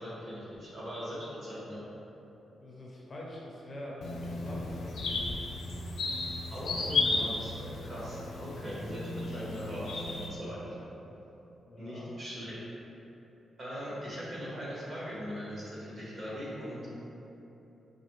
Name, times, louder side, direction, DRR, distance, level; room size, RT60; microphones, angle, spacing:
voice 1, 0.0-1.8 6.5-10.8 11.8-12.6 13.6-16.9, equal, 40° right, -8 dB, 1.2 m, -40 dB
voice 2, 2.6-5.3 11.7-12.1, left 1 dB, 30° left, -4 dB, 0.5 m, -44 dB
sound 1, 4.0-10.3, left 3 dB, 85° left, 0.6 m, -34 dB
5.1 x 2.7 x 3.0 m, 3.0 s
wide cardioid pair, 165°, 0 cm